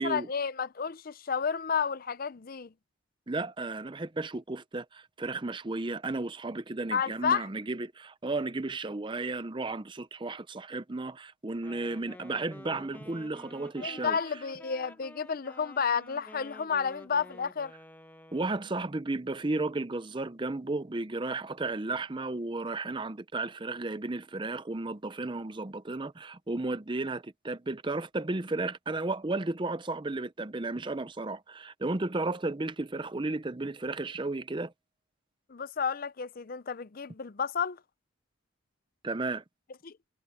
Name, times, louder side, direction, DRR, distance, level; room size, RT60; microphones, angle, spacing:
voice 1, 0.0-2.7 6.9-7.5 13.8-17.7 35.5-37.8 39.8-39.9, left 6 dB, 45° left, 0.5 m, -31 dB
voice 2, 3.3-14.2 18.3-34.7 39.0-39.4, right 2 dB, 20° right, 0.6 m, -34 dB
Wind instrument woodwind instrument, 11.6-18.8, left 1 dB, 10° left, 1.1 m, -51 dB
head